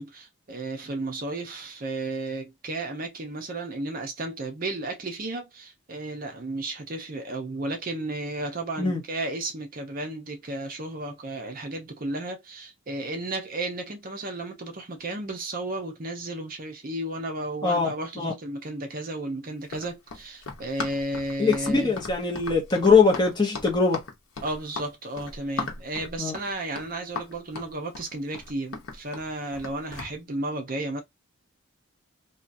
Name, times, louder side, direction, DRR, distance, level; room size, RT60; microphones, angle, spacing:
voice 1, 0.0-21.9 24.4-31.0, right 2 dB, 40° right, 0.6 m, -33 dB
voice 2, 17.6-18.3 21.4-24.0 26.2-26.3, left 4 dB, 20° left, 0.7 m, -22 dB
Run, 19.6-30.2, left 4 dB, 85° left, 0.8 m, -37 dB
2.8 x 2.3 x 2.5 m
head